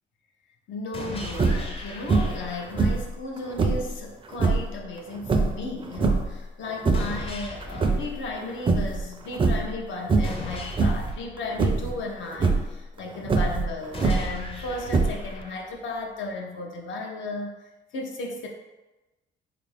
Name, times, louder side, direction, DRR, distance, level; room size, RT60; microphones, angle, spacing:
voice 1, 0.7-18.5, left 2 dB, 75° left, 1 dB, 0.7 m, -35 dB
sound 1, 0.9-3.0 6.9-9.0 10.2-12.3 13.9-16.0, left 1 dB, 30° left, 0.6 m, -39 dB
sound 2, 1.3-1.8 2.1-2.5 2.8-3.9 4.3-4.7 5.2-6.4 6.7-7.2 7.6-8.4 8.7-9.0 9.3-9.8 10.1-10.5 10.8-11.1 11.6-11.9 12.3-12.7 13.2-14.4 14.9-15.4, right 3 dB, 25° right, 0.4 m, -23 dB
3.5 x 2.5 x 3.3 m, 1.1 s
cardioid pair, 90°, 20 cm